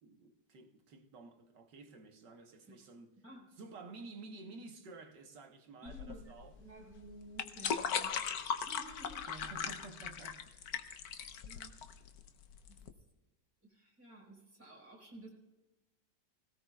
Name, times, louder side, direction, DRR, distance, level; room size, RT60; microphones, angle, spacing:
voice 1, 0.0-3.2 3.6-6.5 9.3-11.0, right 3 dB, 70° right, 1.9 m, -52 dB
voice 2, 5.8-8.2 8.6-9.3 11.4-11.7 12.7-12.8 13.6-15.3, right 1 dB, 5° right, 4.7 m, -53 dB
sound 1, 5.9-12.9, left 7 dB, 60° left, 1.2 m, -39 dB
24.5 x 17.5 x 2.4 m
omnidirectional pair, 2.0 m